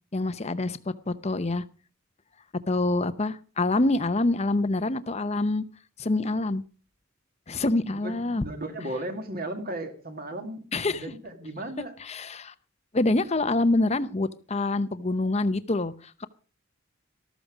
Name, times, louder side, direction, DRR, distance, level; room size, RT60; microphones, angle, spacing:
voice 1, 0.1-1.6 2.7-5.6 6.0-6.6 7.5-8.4 10.7-11.0 12.0-12.5 12.9-16.3, left 2 dB, 30° left, 13 dB, 0.8 m, -26 dB
voice 2, 7.9-12.0, right 1 dB, 45° right, 6 dB, 2.2 m, -36 dB
13.5 x 13.5 x 5.0 m, 0.38 s
head